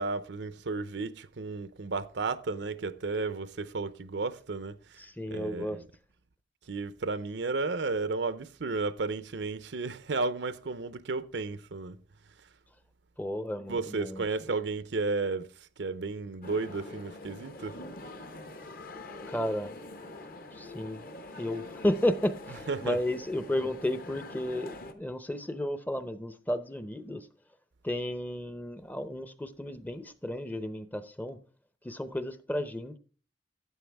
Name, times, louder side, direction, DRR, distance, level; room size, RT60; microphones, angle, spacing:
voice 1, 0.0-5.0 5.3-5.8 6.7-12.0 13.7-15.5 15.8-17.8 22.7-23.0, right 3 dB, 70° right, 0.6 m, -33 dB
voice 2, 5.0-5.8 13.2-14.2 19.3-19.8 20.5-21.0 21.3-27.3 27.8-31.4 31.8-33.0, left 1 dB, 10° left, 0.6 m, -33 dB
sound 1, 16.4-24.9, left 2 dB, 50° left, 1.0 m, -45 dB
12.5 x 8.5 x 3.4 m
head